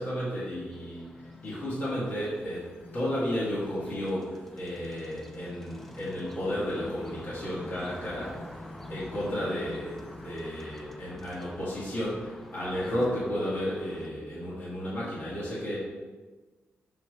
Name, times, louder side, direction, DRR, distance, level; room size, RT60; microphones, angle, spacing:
voice 1, 0.0-8.5 8.9-15.8, equal, 50° left, -8 dB, 1.8 m, -33 dB
sound 1, 0.7-14.1, equal, 5° left, 0.4 m, -48 dB
sound 2, 1.0-10.6, left 3 dB, 70° left, 0.8 m, -49 dB
5.9 x 5.8 x 3.2 m, 1.3 s
wide cardioid pair, 175°, 5 cm